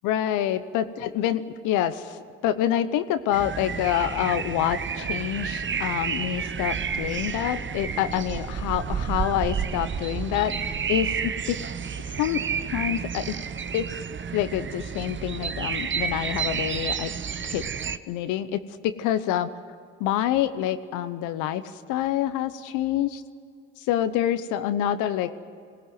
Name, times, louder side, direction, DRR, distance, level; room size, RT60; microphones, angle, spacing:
voice 1, 0.0-11.6 12.2-12.4 12.7-13.3 13.7-13.9 14.3-17.1 17.5-17.6 18.1-19.5 20.0-21.6 21.9-23.2 23.9-25.4, left 11 dB, 85° left, 11 dB, 0.9 m, -27 dB
sound 1, 3.3-18.0, right 6 dB, 40° right, 0.9 m, -30 dB
21.5 x 18.0 x 9.3 m, 2.3 s
hypercardioid pair, 45°, 30 cm